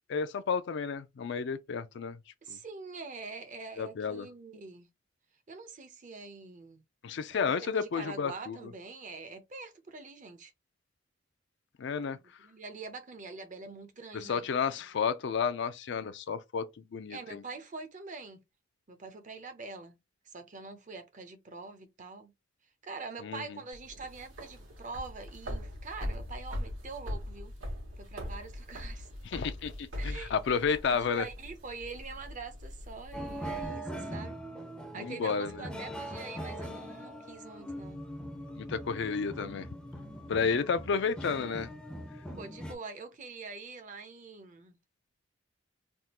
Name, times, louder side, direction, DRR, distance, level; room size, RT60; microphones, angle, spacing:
voice 1, 0.1-2.2 2.5-2.6 3.8-4.3 7.0-8.6 11.8-12.2 14.1-16.7 16.9-17.4 23.2-23.4 29.2-31.3 34.9-35.7 38.6-39.7 40.3-41.7, left 6 dB, 65° left, 0.4 m, -31 dB
voice 2, 2.4-4.9 5.5-6.8 7.3-10.5 12.1-14.8 17.1-18.4 18.9-20.0 20.2-22.3 22.8-27.5 28.0-29.1 30.0-30.6 30.8-34.4 34.9-38.0 42.4-44.8, right 4 dB, 40° right, 0.6 m, -44 dB
sound 1, 23.7-33.7, left 1 dB, 80° right, 1.5 m, -41 dB
sound 2, 33.1-42.7, equal, 5° left, 0.5 m, -41 dB
3.5 x 2.3 x 2.9 m
head